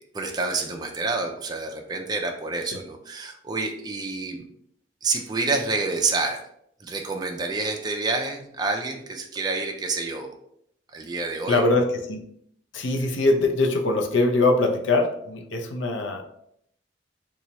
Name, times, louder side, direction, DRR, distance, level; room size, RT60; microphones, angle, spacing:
voice 1, 0.0-4.5 5.0-6.4 6.8-10.3 10.9-11.6, right 3 dB, 20° right, 3 dB, 0.4 m, -28 dB
voice 2, 11.5-12.2 12.7-16.2, left 2 dB, 85° left, 5 dB, 0.5 m, -22 dB
2.9 x 2.3 x 3.9 m, 0.71 s
head